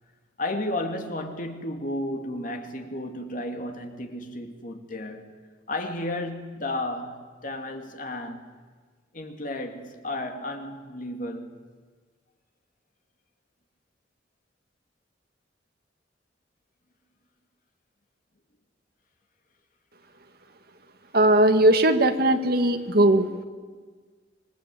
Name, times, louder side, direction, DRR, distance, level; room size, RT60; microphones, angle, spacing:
voice 1, 0.4-5.3 5.7-8.5 9.1-11.6, left 1 dB, 45° left, 2.4 m, -33 dB
voice 2, 21.1-23.3, right 1 dB, 55° right, 1.9 m, -19 dB
26.0 x 22.0 x 8.5 m
head